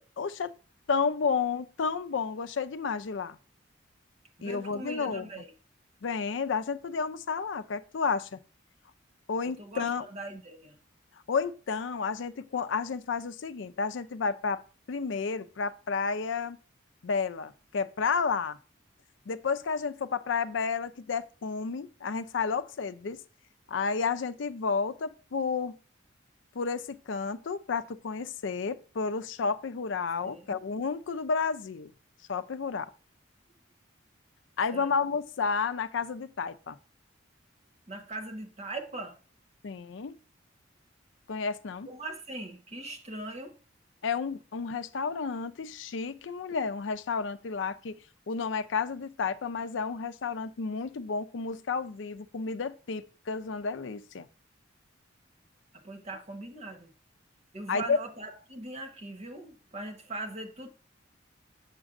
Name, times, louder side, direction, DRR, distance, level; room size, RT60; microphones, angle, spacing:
voice 1, 0.2-0.5 0.9-3.4 4.4-5.3 6.0-8.4 9.3-10.1 11.3-14.6 14.9-16.6 17.0-18.6 19.3-23.2 23.7-25.8 26.5-31.9 32.3-32.9 34.6-36.8 39.6-40.2 41.3-41.9 44.0-54.3 57.7-58.0, left 5 dB, 70° left, 0.5 m, -31 dB
voice 2, 4.4-5.5 9.6-10.8 30.2-30.5 34.7-34.9 37.9-39.2 41.9-43.6 55.8-56.9 57.5-60.7, right 2 dB, 35° right, 1.1 m, -40 dB
7.3 x 6.0 x 2.5 m
head